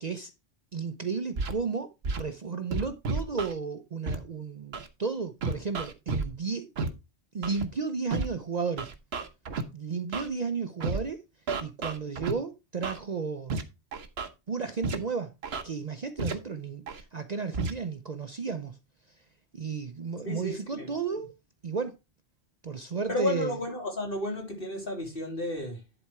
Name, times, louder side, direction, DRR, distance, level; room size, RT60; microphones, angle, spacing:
voice 1, 0.0-0.3 0.7-1.9 2.1-6.7 7.3-8.9 9.7-11.2 11.6-13.6 14.5-15.3 15.6-18.8 19.5-21.3 21.6-21.9 22.6-23.6, right 5 dB, 45° right, 0.7 m, -33 dB
Scratching (performance technique), 1.4-1.5 2.0-2.2 2.7-3.5 4.1-4.2 4.7-4.9 5.4-6.3 6.8-6.9 7.4-7.6 8.1-8.3 8.8-9.6 10.1-10.3 10.8-11.0 11.5-12.3 12.8-13.0 13.5-13.6 13.9-14.3 14.8-15.0 15.4-15.6 16.2-16.3 16.9-17.0 17.5-17.7, right 4 dB, 65° right, 1.3 m, -31 dB
voice 2, 20.2-21.2 23.1-25.8, left 2 dB, 55° left, 3.5 m, -33 dB
11.0 x 4.3 x 4.7 m
omnidirectional pair, 1.1 m